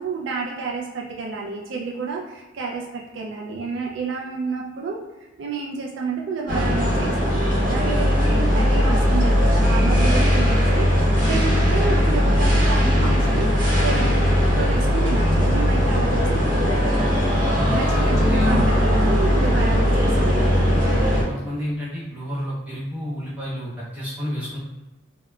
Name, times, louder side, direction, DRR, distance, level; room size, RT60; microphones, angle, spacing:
voice 1, 0.0-10.9 11.2-13.5 13.8-14.2 14.5-16.9 17.7-20.4, right 4 dB, 60° right, -2 dB, 0.3 m, -30 dB
sound 1, 6.5-21.2, equal, 40° right, 0.8 m, -19 dB
voice 2, 17.5-18.5 20.9-24.6, equal, 5° right, -10 dB, 1.1 m, -30 dB
3.5 x 2.1 x 2.2 m, 1.1 s
head